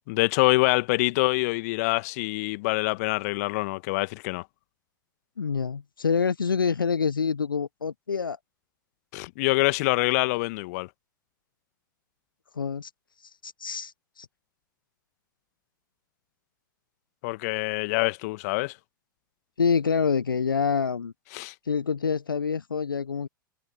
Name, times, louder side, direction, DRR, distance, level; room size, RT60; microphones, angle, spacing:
voice 1, 0.0-4.4 9.1-10.9 17.2-18.8 21.3-21.5, left 24 dB, 50° left, 1.5 m, -25 dB
voice 2, 5.4-8.4 12.5-12.9 13.2-14.3 19.6-21.1 21.6-23.3, left 6 dB, 80° left, 0.8 m, -26 dB
figure-of-eight pair, 95°, 11 cm